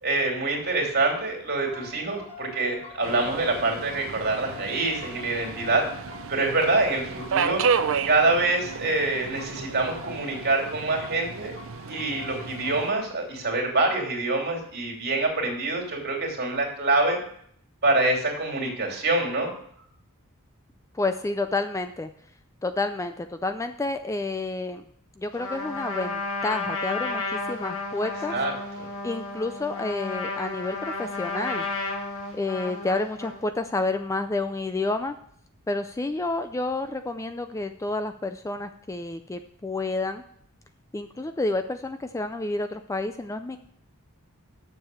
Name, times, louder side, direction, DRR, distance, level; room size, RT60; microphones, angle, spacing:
voice 1, 0.0-5.8 6.3-7.6 8.0-11.5 11.9-17.2 17.8-19.5 28.3-28.9, right 2 dB, 50° right, 1 dB, 2.9 m, -25 dB
sound 1, 1.6-13.0, left 6 dB, 30° left, 2.8 m, -46 dB
Subway metro underground, 3.0-12.9, right 6 dB, 65° right, 0.6 m, -32 dB
voice 2, 20.9-22.1 22.6-24.8 25.2-28.3 29.0-31.6 32.3-35.2 35.7-40.2 40.9-43.6, left 2 dB, 15° left, 9 dB, 0.4 m, -29 dB
Trumpet, 25.3-33.5, left 3 dB, 65° left, 1.8 m, -32 dB
7.1 x 6.8 x 7.6 m, 0.65 s
head